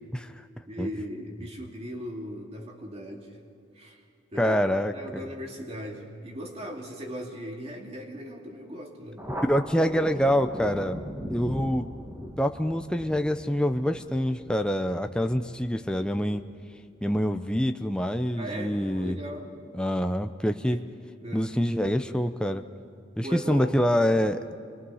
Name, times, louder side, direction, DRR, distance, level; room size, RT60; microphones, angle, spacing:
voice 1, 0.7-3.4 3.7-4.0 4.3-4.6 4.9-9.3 18.4-19.5 20.7-20.8 21.2-21.5 23.2-23.8, equal, 30° right, 1 dB, 2.4 m, -38 dB
voice 2, 4.4-5.2 9.5-11.0 11.3-11.9 12.4-16.4 17.0-19.2 19.7-20.8 21.3-22.6 23.2-24.4, equal, 5° left, 6 dB, 0.6 m, -26 dB
Thunder, 9.2-16.2, equal, 15° right, 1.7 m, -39 dB
25.0 x 22.5 x 5.6 m, 2.4 s
head